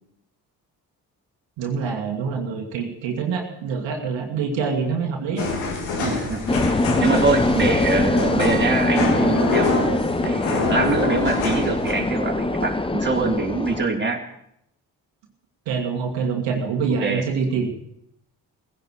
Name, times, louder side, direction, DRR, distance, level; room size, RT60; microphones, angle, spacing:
voice 1, 1.6-5.5 15.7-17.7, right 5 dB, 70° right, 2 dB, 2.1 m, -25 dB
sound 1, 5.4-11.9, left 3 dB, 75° left, 2.9 m, -26 dB
voice 2, 6.0-6.4 7.0-9.7 10.2-14.2 17.0-17.3, right 3 dB, 25° right, 1 dB, 3.2 m, -24 dB
sound 2, 6.5-13.9, left 2 dB, 10° left, 1.1 m, -23 dB
18.0 x 16.0 x 4.8 m, 0.76 s
hypercardioid pair, 40°, 47 cm